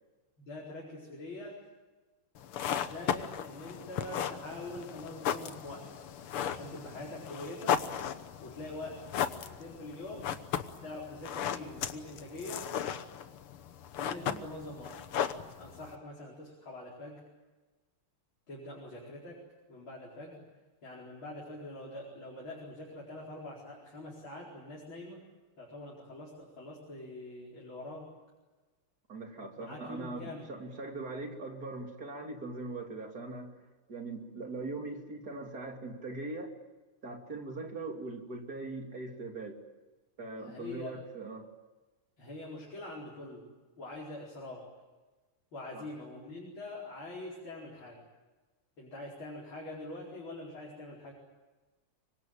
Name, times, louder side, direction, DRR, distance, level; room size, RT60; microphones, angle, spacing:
voice 1, 0.4-1.6 2.8-6.0 6.4-7.8 8.4-9.0 9.5-10.3 10.8-12.7 14.0-15.0 15.6-17.2 18.5-19.4 19.7-20.4 20.8-25.3 25.6-28.1 29.6-30.5 40.4-40.9 42.2-43.5 43.8-44.7 45.5-48.0 48.8-51.1, left 2 dB, 65° left, -3 dB, 5.5 m, -44 dB
sound 1, 2.4-16.0, left 9 dB, 90° left, 2.1 m, -36 dB
voice 2, 29.1-36.5 37.0-39.6 40.2-41.5 45.7-45.9, right 2 dB, 45° right, 3 dB, 3.4 m, -41 dB
25.5 x 23.5 x 9.0 m, 1.2 s
omnidirectional pair, 2.4 m